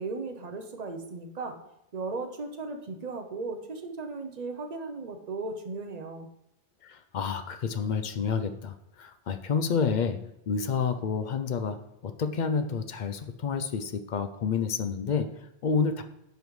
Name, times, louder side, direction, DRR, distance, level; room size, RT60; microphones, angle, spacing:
voice 1, 0.0-1.6 1.9-6.3, right 3 dB, 45° right, 5 dB, 0.8 m, -36 dB
voice 2, 6.8-16.0, left 5 dB, 55° left, 9 dB, 0.6 m, -29 dB
9.0 x 5.1 x 3.2 m, 0.84 s
omnidirectional pair, 1.1 m